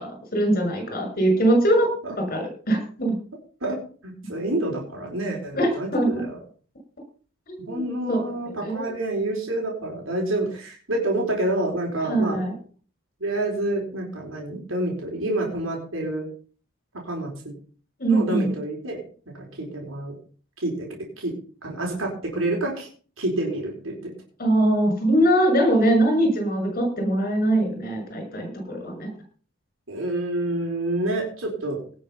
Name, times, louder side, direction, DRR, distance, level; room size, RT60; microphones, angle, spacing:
voice 1, 0.0-1.9 2.3-3.1 5.6-6.2 7.5-8.2 8.6-8.9 12.0-12.5 18.0-18.5 24.4-29.1, right 1 dB, 45° left, 4 dB, 6.4 m, -22 dB
voice 2, 3.6-6.4 7.6-12.4 13.2-16.3 17.0-17.3 18.1-19.0 19.4-20.1 20.6-20.9 21.2-21.3 21.6-22.9 23.2-24.1 29.9-31.8, right 1 dB, 65° right, -1 dB, 4.4 m, -28 dB
18.0 x 6.9 x 5.7 m, 0.42 s
head